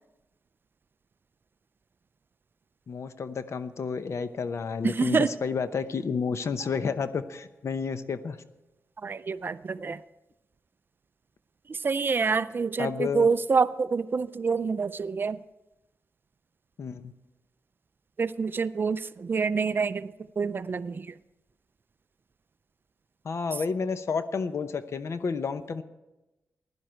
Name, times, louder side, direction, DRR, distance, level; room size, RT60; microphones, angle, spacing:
voice 1, 2.9-8.4 12.8-13.3 16.8-17.1 23.2-25.8, left 5 dB, 60° left, 11 dB, 0.8 m, -30 dB
voice 2, 4.8-5.3 9.0-10.0 11.7-15.4 18.2-21.1, right 5 dB, 40° right, 15 dB, 0.4 m, -27 dB
sound 1, 6.6-8.2 8.5-8.7, right 1 dB, 90° left, 3.4 m, -55 dB
16.0 x 11.0 x 4.5 m, 1.0 s
wide cardioid pair, 110°, 6 cm